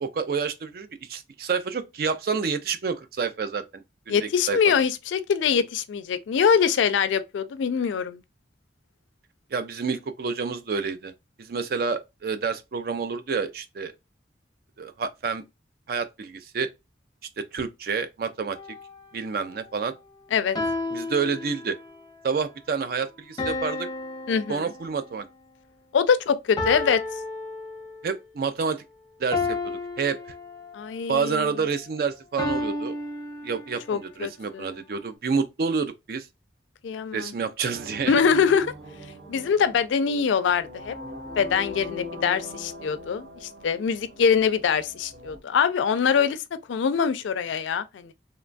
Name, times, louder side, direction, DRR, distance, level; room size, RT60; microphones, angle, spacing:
voice 1, 0.0-3.6 4.1-4.6 9.5-11.1 11.4-13.9 14.8-15.4 15.9-16.7 17.4-18.6 19.1-19.9 20.9-21.8 22.2-23.9 24.5-25.3 28.0-28.8 29.2-30.2 31.1-32.9 33.4-36.3 37.1-38.1, right 5 dB, 50° right, 0.4 m, -28 dB
voice 2, 4.1-8.2 20.3-20.6 24.3-24.7 25.9-27.0 30.7-31.5 33.9-34.8 36.8-37.3 38.1-38.7 39.3-40.9 41.4-46.4 46.7-48.1, left 6 dB, 85° left, 0.3 m, -23 dB
sound 1, 18.6-19.0 20.6-22.0 23.4-25.2 26.6-28.2 29.3-30.9 32.4-34.0, left 2 dB, 20° left, 0.5 m, -32 dB
sound 2, 37.7-45.4, left 2 dB, 70° right, 0.7 m, -41 dB
2.9 x 2.2 x 2.4 m
head